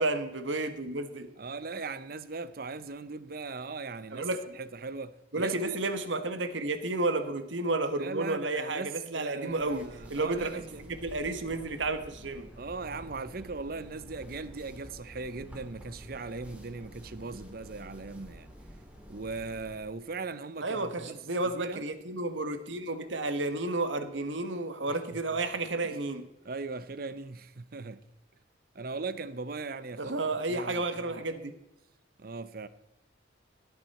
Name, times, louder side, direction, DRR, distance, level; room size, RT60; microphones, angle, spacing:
voice 1, 0.0-1.3 4.1-4.5 5.3-12.5 20.6-26.3 30.0-31.6, right 2 dB, 80° right, 1.4 m, -32 dB
voice 2, 1.4-4.3 4.6-5.8 8.0-11.0 12.6-18.5 19.1-21.2 21.5-21.8 24.9-25.2 26.4-28.0 28.7-30.2 30.5-31.2 32.2-32.7, right 4 dB, 50° right, 0.8 m, -39 dB
sound 1, 9.5-20.0, equal, 5° right, 2.1 m, -49 dB
16.5 x 9.0 x 4.2 m
head